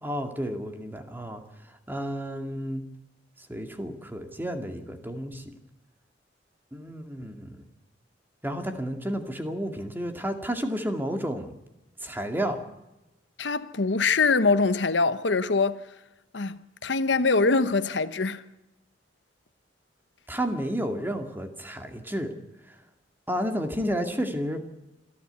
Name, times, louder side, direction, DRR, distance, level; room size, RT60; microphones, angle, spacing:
voice 1, 0.0-1.4 1.9-2.8 3.4-5.4 6.7-7.6 8.4-11.5 12.0-12.6 20.3-22.3 23.3-24.6, equal, 10° right, 2.3 m, -31 dB
voice 2, 13.4-15.8 16.3-18.4, left 4 dB, 70° left, 0.9 m, -23 dB
26.5 x 12.5 x 8.2 m
head